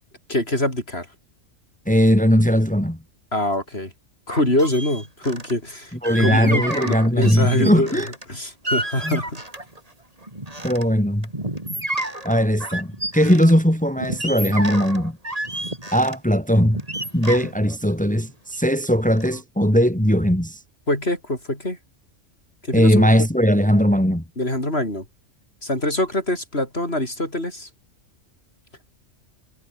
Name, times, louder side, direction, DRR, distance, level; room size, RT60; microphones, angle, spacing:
voice 1, 0.3-1.1 3.3-3.9 4.3-8.0 8.3-9.4 20.9-21.8 22.7-23.1 24.4-25.0 25.6-27.7, left 1 dB, 55° left, 7.7 m, -24 dB
voice 2, 1.9-3.0 6.0-8.1 9.0-9.2 10.6-11.3 12.2-15.2 15.9-16.8 17.1-20.6 22.7-24.2, equal, 5° left, 3.2 m, -19 dB
sound 1, 4.3-5.5 6.0-8.3 8.6-9.8 10.2-10.8 11.2-13.5 14.0-16.2 16.6-18.9 19.2-19.4, right 1 dB, 30° right, 4.6 m, -30 dB
omnidirectional pair, 1.3 m